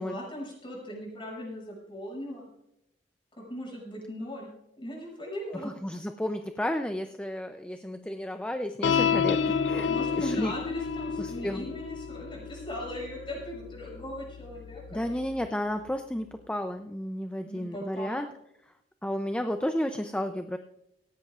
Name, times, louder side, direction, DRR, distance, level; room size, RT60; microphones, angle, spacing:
voice 1, 0.0-2.5 3.3-4.5 4.8-5.7 9.9-15.0 17.4-18.2, equal, 30° left, -2 dB, 6.6 m, -39 dB
voice 2, 5.6-9.9 10.2-10.5 11.2-11.7 14.9-18.3 19.0-20.6, left 1 dB, 5° left, 7 dB, 0.5 m, -32 dB
sound 1, 8.8-15.5, left 6 dB, 75° left, 0.5 m, -31 dB
18.0 x 16.5 x 2.4 m, 0.81 s
head